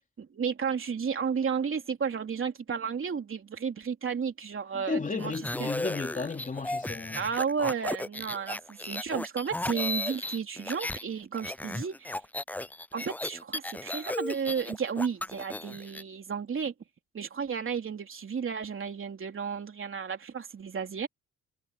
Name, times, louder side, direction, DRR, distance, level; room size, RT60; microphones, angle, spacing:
voice 1, 0.2-5.3 5.6-5.7 7.1-12.2 12.9-16.7 17.1-21.1, right 6 dB, 45° right, 3.3 m, -33 dB
voice 2, 4.7-7.2, left 4 dB, 25° left, 2.9 m, -34 dB
sound 1, 5.2-11.0 11.3-16.0, left 1 dB, 5° left, 0.4 m, -35 dB
cardioid pair, 90°, 30 cm